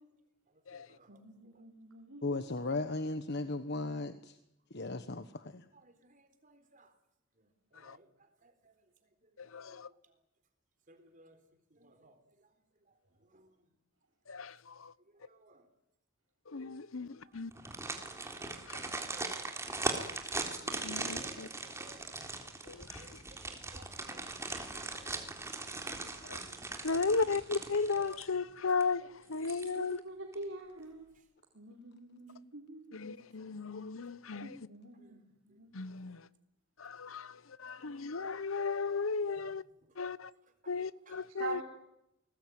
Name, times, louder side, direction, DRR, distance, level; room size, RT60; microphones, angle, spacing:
voice 1, 0.5-1.6 3.3-3.4 5.7-6.9 7.4-8.8 9.2-10.2 10.9-11.4 11.7-12.9 13.2-13.7 15.1-15.7 16.6-17.6 18.4-18.5 18.8-19.4 20.6-22.2 23.0-26.5 26.9-27.4 31.2-31.3 34.9-35.2 35.5-35.6 39.4-39.5 39.8-39.9 40.4-40.8 41.1-41.3, right 1 dB, 40° right, 3.9 m, -62 dB
voice 2, 1.1-2.4 29.7-31.1 31.5-33.2 34.4-35.7 41.4-41.6, right 2 dB, 70° right, 4.1 m, -45 dB
voice 3, 2.2-4.4 4.7-5.6, left 2 dB, 55° left, 1.2 m, -36 dB
voice 4, 9.5-9.9 14.3-14.9 16.5-17.5 18.7-18.8 20.8-21.5 22.7-23.0 26.2-26.4 26.8-30.0 32.9-34.6 35.7-36.2 36.8-37.3 37.6-39.6 40.0-40.3 40.7-41.6, left 4 dB, 90° left, 0.9 m, -35 dB
sound 1, 17.5-28.5 28.8-28.9 29.3-30.0 30.3-30.4, right 3 dB, 15° right, 3.5 m, -40 dB
28.0 x 20.5 x 9.4 m
head